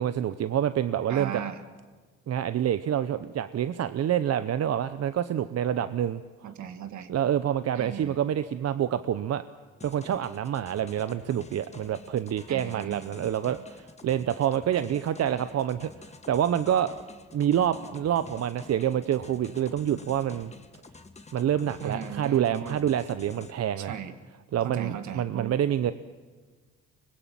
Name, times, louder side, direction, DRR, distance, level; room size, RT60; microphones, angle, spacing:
voice 1, 0.0-1.3 2.3-6.5 7.1-9.4 9.8-15.9 16.3-17.0 17.3-20.5 21.3-23.9 24.5-25.9, right 10 dB, 55° right, 13 dB, 0.8 m, -27 dB
voice 2, 1.1-1.6 6.4-7.1 7.7-8.2 12.5-13.1 21.8-22.8 23.8-24.1 24.6-25.5 25.8-25.9, right 8 dB, 70° right, 10 dB, 1.7 m, -37 dB
sound 1, 9.8-23.5, left 3 dB, 20° left, 1.5 m, -49 dB
24.0 x 20.5 x 7.6 m, 1.4 s
cardioid pair, 90°, 30 cm